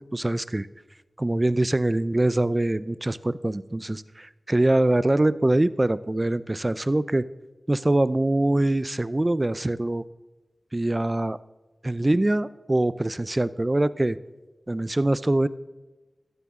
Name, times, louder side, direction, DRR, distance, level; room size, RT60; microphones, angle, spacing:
voice 1, 0.1-0.7 1.2-7.2 7.7-10.0 10.7-11.4 11.8-14.2 14.7-15.5, right 1 dB, 25° right, 16 dB, 0.5 m, -23 dB
15.0 x 13.5 x 3.7 m, 1.2 s
wide cardioid pair, 70°, 0 cm